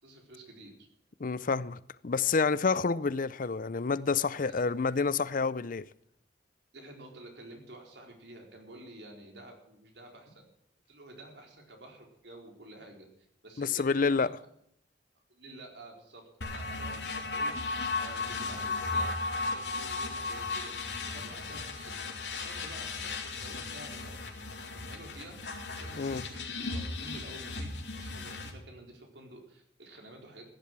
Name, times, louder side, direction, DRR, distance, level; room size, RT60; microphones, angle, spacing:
voice 1, 0.0-0.7 4.4-4.6 6.7-10.4 10.9-13.1 13.4-14.3 15.3-17.5 18.0-19.1 19.4-25.4 25.7-30.5, right 1 dB, 80° right, 4.4 m, -50 dB
voice 2, 1.2-5.9 13.6-14.3 26.0-26.2, left 4 dB, 50° left, 0.6 m, -28 dB
sound 1, 16.4-28.5, left 3 dB, 80° left, 3.1 m, -36 dB
15.5 x 10.5 x 6.1 m
head